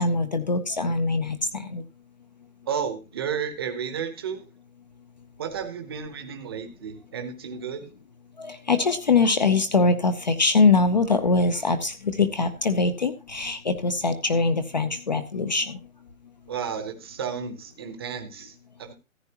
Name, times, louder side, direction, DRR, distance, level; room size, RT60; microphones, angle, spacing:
voice 1, 0.0-1.8 8.4-15.8, left 3 dB, 30° left, 10 dB, 0.6 m, -23 dB
voice 2, 2.7-4.5 5.4-7.9 16.5-18.9, right 7 dB, 20° right, 7 dB, 0.8 m, -32 dB
14.5 x 9.0 x 2.9 m, 0.28 s
hypercardioid pair, 165°, 42 cm